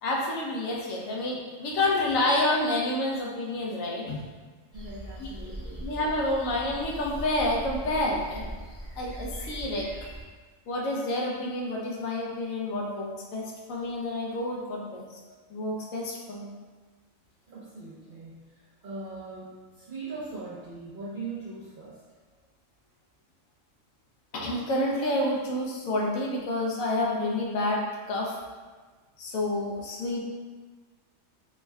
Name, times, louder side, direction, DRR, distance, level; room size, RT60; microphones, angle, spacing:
voice 1, 0.0-4.2 5.2-5.3 5.8-8.5 9.0-9.9 10.7-15.1 15.5-16.5 24.3-28.3 29.2-30.2, left 1 dB, 85° left, -2 dB, 1.0 m, -29 dB
sound 1, 4.7-10.2, right 1 dB, 25° left, 0.3 m, -40 dB
voice 2, 4.7-5.9 17.5-22.0, right 3 dB, 55° right, -8 dB, 0.6 m, -40 dB
3.5 x 2.1 x 3.3 m, 1.4 s
omnidirectional pair, 1.4 m